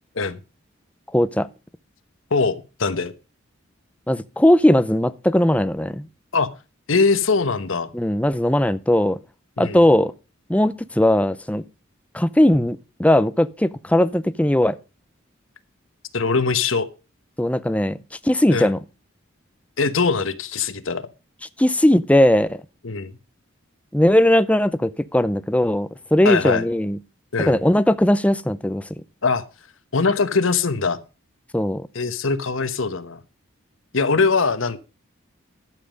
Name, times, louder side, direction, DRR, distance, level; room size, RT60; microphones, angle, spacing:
voice 1, 1.1-1.5 4.1-6.1 7.9-9.2 9.6-10.1 10.5-11.6 12.1-14.8 17.4-18.0 18.2-18.8 21.6-22.6 23.9-27.0 27.5-28.8 31.5-31.9, left 1 dB, 5° left, 0.5 m, -18 dB
voice 2, 2.3-3.1 6.3-6.5 6.9-7.9 9.6-9.8 16.1-16.9 18.5-18.7 19.8-21.1 22.8-23.1 26.2-26.6 27.3-27.6 29.2-29.4 29.9-31.0 31.9-33.2 33.9-34.8, left 4 dB, 70° left, 1.1 m, -21 dB
12.0 x 7.5 x 5.2 m
head